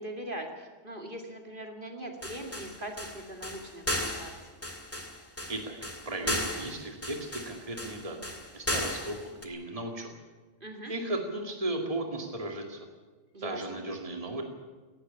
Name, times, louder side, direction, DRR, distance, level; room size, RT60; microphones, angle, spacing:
voice 1, 0.0-4.3 10.6-10.9 13.3-13.8, right 1 dB, 45° right, 3 dB, 2.6 m, -41 dB
sound 1, 2.2-9.5, left 1 dB, 10° left, 2.0 m, -35 dB
voice 2, 6.1-8.2 8.5-10.1 10.9-12.9 13.4-14.4, right 1 dB, 30° right, 2 dB, 2.4 m, -35 dB
18.0 x 15.0 x 9.9 m, 1.3 s
omnidirectional pair, 1.2 m